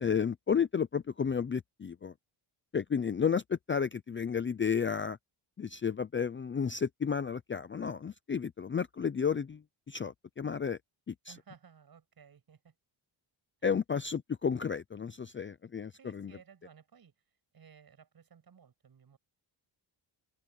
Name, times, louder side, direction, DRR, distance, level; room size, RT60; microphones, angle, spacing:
voice 1, 0.0-2.1 2.7-5.2 5.6-10.8 11.1-11.3 13.6-16.3, left 6 dB, 25° left, 0.5 m, -32 dB
voice 2, 11.3-12.7 13.6-13.7 15.9-17.1 17.5-19.2, right 7 dB, 45° right, 7.8 m, -58 dB
open air
wide cardioid pair, 150°, 48 cm